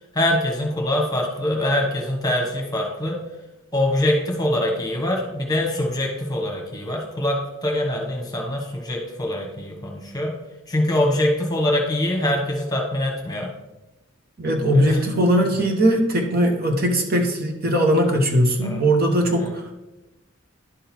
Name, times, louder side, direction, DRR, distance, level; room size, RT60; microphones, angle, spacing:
voice 1, 0.1-3.2 3.7-10.4 10.7-13.5 14.7-15.0 15.5-15.7 18.6-18.8 19.4-19.5, left 1 dB, 20° left, 0 dB, 1.2 m, -24 dB
voice 2, 14.4-19.7, right 1 dB, 45° right, 2 dB, 1.0 m, -20 dB
11.0 x 3.8 x 4.4 m, 1.0 s
head